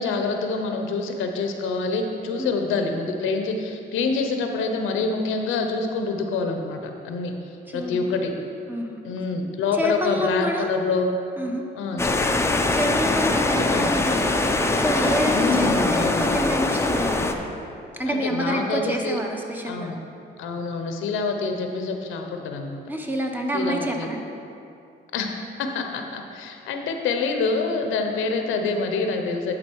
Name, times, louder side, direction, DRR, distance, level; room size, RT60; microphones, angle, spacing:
voice 1, 0.0-6.8 7.0-7.3 7.7-8.3 9.0-11.1 11.7-12.4 13.7-13.9 15.3-16.3 18.1-19.2 19.7-20.0 20.4-22.8 23.5-24.1 25.1-25.3 25.6-29.5, left 4 dB, 90° left, 4 dB, 0.7 m, -26 dB
voice 2, 7.7-8.1 8.7-9.0 9.8-10.7 11.4-11.6 11.9-12.2 12.7-17.4 18.0-19.9 22.9-24.2, right 1 dB, 10° right, 1 dB, 0.9 m, -28 dB
sound 1, 12.0-17.3, left 2 dB, 15° left, 0.5 m, -22 dB
11.0 x 3.9 x 4.6 m, 2.6 s
cardioid pair, 90°, 20 cm